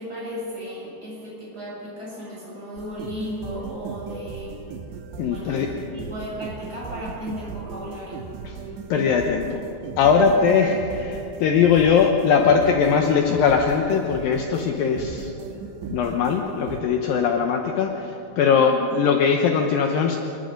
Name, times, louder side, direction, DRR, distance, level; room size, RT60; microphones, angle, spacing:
voice 1, 0.0-4.6 5.3-8.3 10.2-10.3 18.5-18.8, left 1 dB, 20° right, -6 dB, 7.7 m, -35 dB
sound 1, 2.8-16.8, right 6 dB, 75° right, 3.4 m, -37 dB
voice 2, 5.2-5.7 8.4-8.6 8.9-9.6 10.0-15.3 15.9-20.2, left 6 dB, 80° left, 3 dB, 2.0 m, -20 dB
26.5 x 22.0 x 5.3 m, 2.9 s
omnidirectional pair, 5.5 m